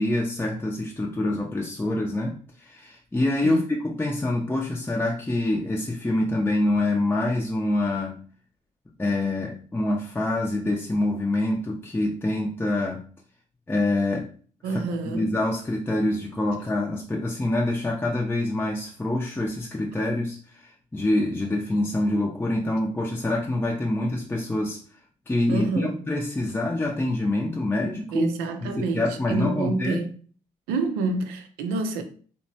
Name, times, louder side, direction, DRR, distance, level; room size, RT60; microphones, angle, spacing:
voice 1, 0.0-8.2 9.0-13.0 13.7-14.3 14.7-24.8 25.3-28.3 28.6-30.0, left 1 dB, 15° left, 0.5 m, -26 dB
voice 2, 14.6-15.4 25.5-26.0 28.1-30.1 30.7-32.0, right 3 dB, 85° right, 0.4 m, -28 dB
2.8 x 2.1 x 2.7 m
supercardioid pair, 60°, 16 cm